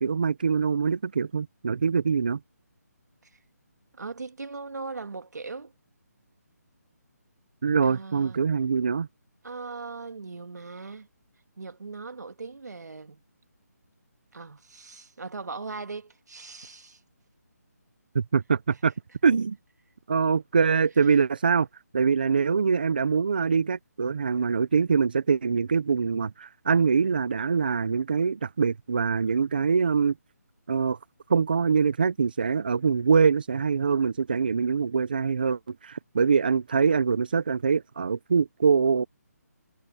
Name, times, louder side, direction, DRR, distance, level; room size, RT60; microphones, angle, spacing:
voice 1, 0.0-2.4 7.6-9.1 18.1-18.9 19.2-19.6 20.1-21.7 21.9-30.1 30.7-31.0 31.3-39.0, right 5 dB, 30° right, 0.6 m, -24 dB
voice 2, 3.9-5.7 7.8-8.4 9.4-11.1 11.6-13.2 14.3-17.0, right 4 dB, 75° right, 2.3 m, -39 dB
hypercardioid pair, 175°, 9 cm